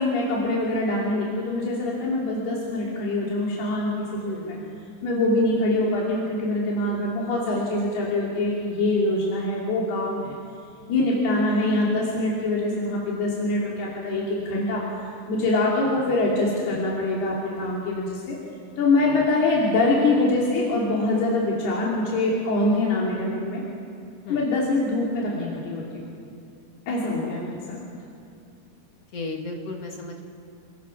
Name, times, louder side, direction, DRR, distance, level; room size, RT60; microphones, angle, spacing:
voice 1, 0.0-4.6 5.0-10.3 10.9-18.4 18.8-23.6 24.3-26.1 26.9-27.8, left 2 dB, 90° left, -4 dB, 4.9 m, -24 dB
voice 2, 4.3-5.0 19.0-19.2 24.2-24.4 29.1-30.2, left 2 dB, 50° left, 2 dB, 2.2 m, -36 dB
28.5 x 22.5 x 6.1 m, 2.4 s
omnidirectional pair, 4.4 m